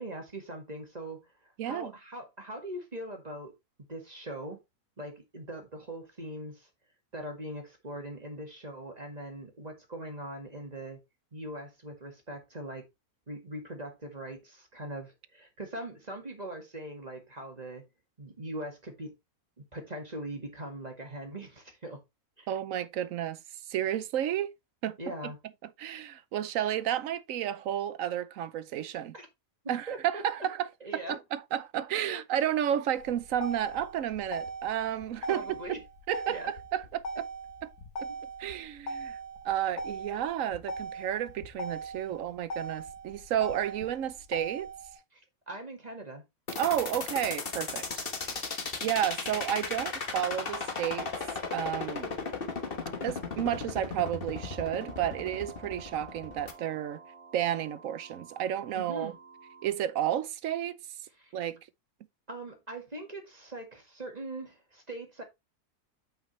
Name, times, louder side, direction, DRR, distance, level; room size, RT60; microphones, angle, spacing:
voice 1, 0.0-3.5 3.9-4.6 5.0-6.7 7.1-11.0 11.3-12.8 13.3-17.8 18.2-19.1 19.6-22.0 22.4-22.5 25.0-25.4 29.1-29.3 29.9-30.2 30.8-31.2 32.1-32.2 35.3-35.8 36.3-36.5 38.1-38.2 45.1-46.2 52.5-52.6 58.7-59.2 61.2-61.3 62.3-65.2, right 1 dB, 25° right, 2.0 m, -41 dB
voice 2, 1.6-1.9 22.5-23.4 23.7-24.5 24.8-25.0 25.2-25.3 25.8-29.1 29.7-35.5 36.1-37.3 37.6-37.7 38.0-38.1 38.4-39.2 39.4-44.7 46.6-48.5 48.8-51.1 51.5-52.1 53.0-57.0 57.3-59.1 59.6-60.8 61.3-61.6, right 11 dB, 70° right, 1.0 m, -32 dB
Motor vehicle (road), 33.0-45.0, right 2 dB, 90° left, 2.4 m, -40 dB
sound 1, 46.5-56.5, left 4 dB, 40° left, 1.4 m, -35 dB
sound 2, 54.3-59.7, right 4 dB, 85° right, 2.1 m, -51 dB
8.7 x 5.7 x 3.2 m
omnidirectional pair, 1.6 m